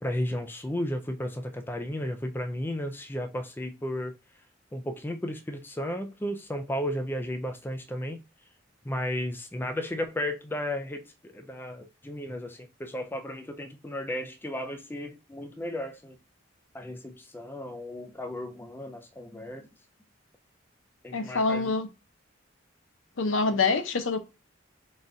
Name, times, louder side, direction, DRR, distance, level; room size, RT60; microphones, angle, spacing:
voice 1, 0.0-4.2 4.7-8.2 8.8-16.2 16.7-19.7 21.0-21.7 23.5-23.6, left 1 dB, 10° left, 0.3 m, -34 dB
voice 2, 21.1-21.9 23.2-24.2, left 3 dB, 80° left, 0.6 m, -25 dB
4.0 x 2.3 x 3.8 m
head